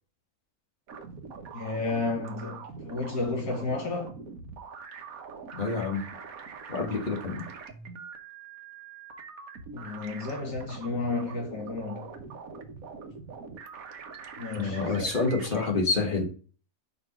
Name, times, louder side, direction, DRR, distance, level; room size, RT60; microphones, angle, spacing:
sound 1, 0.9-15.7, right 5 dB, 75° right, 1.4 m, -43 dB
voice 1, 1.5-4.2 9.7-12.1 14.4-15.1, left 3 dB, 80° left, 2.2 m, -32 dB
voice 2, 5.5-6.1 6.7-7.5 14.6-16.2, left 3 dB, 35° left, 1.7 m, -28 dB
5.2 x 4.3 x 5.9 m
omnidirectional pair, 1.5 m